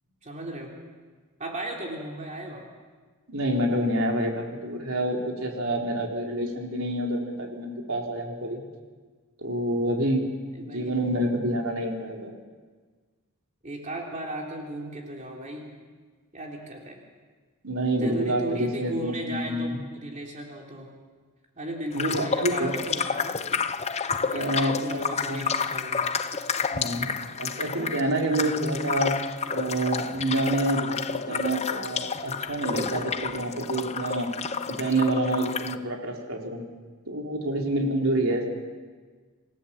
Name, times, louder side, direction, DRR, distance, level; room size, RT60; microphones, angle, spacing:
voice 1, 0.2-0.7 1.4-2.7 10.5-10.9 13.6-15.7 16.3-17.0 18.0-20.9 21.6-23.4 24.2-26.1, right 1 dB, 35° right, -1 dB, 3.4 m, -36 dB
voice 2, 3.3-8.6 9.4-10.2 10.7-12.3 17.6-19.8 21.9-22.8 24.3-25.5 26.7-29.1 29.5-34.3 34.7-36.6 37.1-38.5, right 1 dB, 70° right, 0 dB, 3.9 m, -27 dB
squishy flesh thingy seamless, 21.9-35.8, left 6 dB, 30° left, 0.6 m, -30 dB
27.0 x 16.5 x 7.4 m, 1.5 s
head